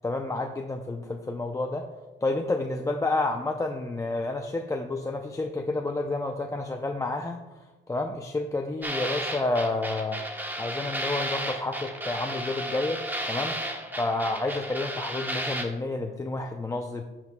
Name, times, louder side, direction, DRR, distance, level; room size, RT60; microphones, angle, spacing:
voice 1, 0.0-1.8 2.2-10.2 10.6-13.0 13.3-13.6 14.0-17.0, left 2 dB, 15° left, 3 dB, 0.5 m, -30 dB
sound 1, 8.8-15.6, right 1 dB, 10° right, 1.0 m, -33 dB
10.5 x 7.4 x 2.2 m, 1.1 s
cardioid pair, 90°, 20 cm